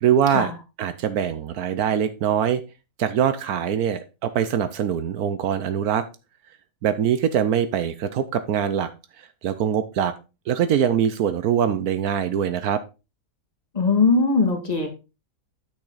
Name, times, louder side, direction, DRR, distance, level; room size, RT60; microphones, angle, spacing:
voice 1, 0.0-0.5 0.8-2.6 3.0-6.0 6.8-8.9 9.2-10.1 10.5-12.8, right 9 dB, 75° right, 12 dB, 1.2 m, -23 dB
voice 2, 13.7-14.9, left 4 dB, 25° left, 2 dB, 2.1 m, -20 dB
8.7 x 6.2 x 4.0 m, 0.29 s
omnidirectional pair, 1.6 m